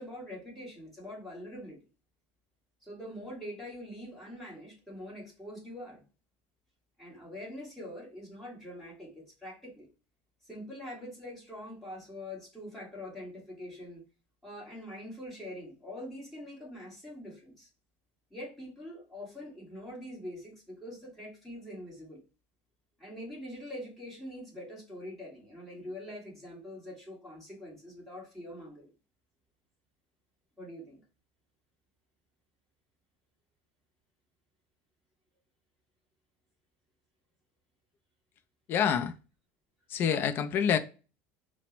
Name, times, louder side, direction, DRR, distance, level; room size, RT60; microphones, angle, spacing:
voice 1, 0.0-1.8 2.8-6.0 7.0-9.9 10.4-14.0 14.4-17.7 18.3-22.2 23.0-28.9 30.6-31.0, left 1 dB, ahead, 1.6 m, -44 dB
voice 2, 38.7-39.1 39.9-40.8, left 8 dB, 40° left, 0.4 m, -27 dB
4.2 x 2.0 x 2.9 m
cardioid pair, 145°, 6 cm